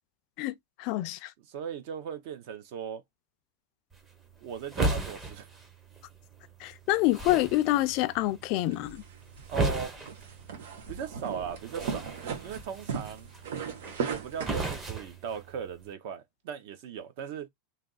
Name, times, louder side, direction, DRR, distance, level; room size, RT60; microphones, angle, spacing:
voice 1, 0.4-1.3 6.6-9.0, left 17 dB, 40° left, 0.4 m, -27 dB
voice 2, 1.5-3.0 4.4-5.5 9.5-10.0 10.9-12.1 12.4-13.3 14.1-17.5, right 7 dB, 50° right, 0.9 m, -38 dB
sound 1, 3.9-15.9, right 2 dB, 15° right, 0.8 m, -37 dB
sound 2, 8.7-14.8, right 6 dB, 80° right, 1.4 m, -38 dB
3.3 x 2.8 x 3.9 m
supercardioid pair, 165°, 0 cm